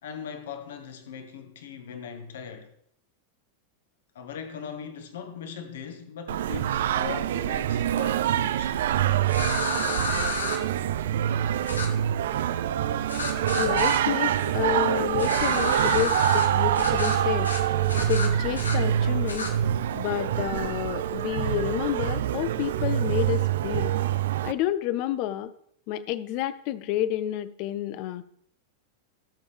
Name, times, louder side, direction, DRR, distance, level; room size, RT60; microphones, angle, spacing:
voice 1, 0.0-2.7 4.1-8.8, left 7 dB, 60° left, 1.5 m, -40 dB
Singing, 6.3-24.5, right 11 dB, 60° right, 0.4 m, -25 dB
sound 1, 9.3-10.6 11.7-11.9 13.1-14.0 15.2-16.5 16.8-17.2 17.4-17.6 17.9-18.8 19.3-19.5, left 3 dB, 75° left, 1.5 m, -31 dB
sound 2, 12.9-20.0, left 5 dB, 30° left, 1.5 m, -47 dB
voice 2, 13.5-17.5 18.1-19.5 19.9-23.9 24.4-25.5 25.9-28.2, left 12 dB, 45° left, 0.6 m, -29 dB
17.0 x 7.0 x 3.4 m
figure-of-eight pair, 90°, 0 cm